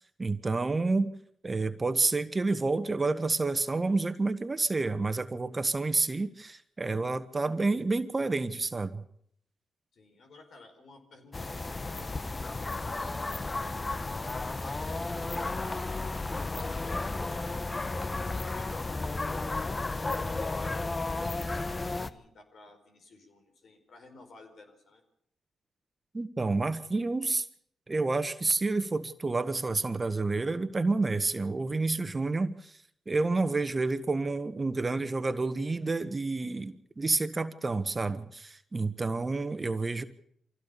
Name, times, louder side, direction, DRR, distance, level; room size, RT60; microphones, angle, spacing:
voice 1, 0.2-1.1 1.4-9.0 26.1-27.5 27.9-32.8 33.1-40.0, right 3 dB, 35° right, 11 dB, 1.5 m, -29 dB
voice 2, 9.9-19.5 20.1-25.0, left 3 dB, 65° left, 5 dB, 4.8 m, -55 dB
sound 1, 11.3-22.1, left 3 dB, 30° left, 1.1 m, -33 dB
24.5 x 16.0 x 7.0 m, 0.68 s
hypercardioid pair, 45°, 0 cm